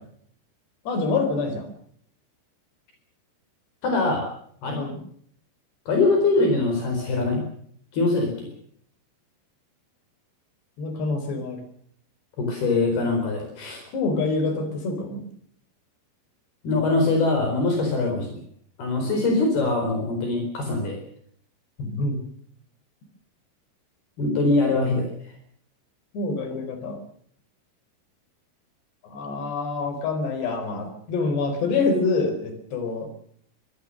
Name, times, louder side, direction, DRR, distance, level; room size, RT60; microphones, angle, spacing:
voice 1, 0.9-1.7 4.7-5.0 10.8-11.6 13.9-15.2 21.8-22.2 26.1-27.0 29.1-33.1, left 3 dB, 85° left, 8 dB, 6.4 m, -26 dB
voice 2, 3.8-4.3 4.6-4.8 5.9-7.4 7.9-8.5 12.4-13.8 16.6-18.4 18.8-21.0 24.2-25.1, left 3 dB, 70° left, 3 dB, 6.2 m, -23 dB
24.5 x 20.0 x 6.5 m, 0.65 s
omnidirectional pair, 4.7 m